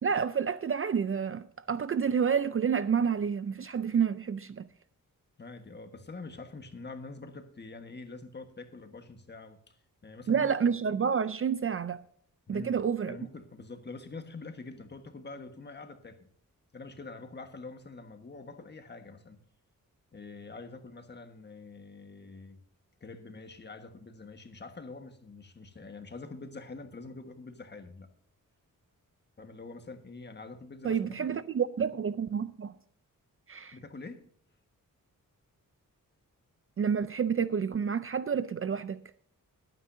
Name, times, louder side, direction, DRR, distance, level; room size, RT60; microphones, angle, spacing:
voice 1, 0.0-4.7 10.3-12.0 12.5-13.2 30.8-32.7 33.5-33.8 36.8-39.0, right 7 dB, 40° right, 0.5 m, -29 dB
voice 2, 5.4-10.7 12.5-12.8 13.0-16.3 16.7-19.4 20.1-22.6 23.0-28.1 29.4-31.3 33.7-34.2, left 3 dB, 30° left, 1.4 m, -45 dB
21.5 x 9.3 x 2.7 m
wide cardioid pair, 170°, 33 cm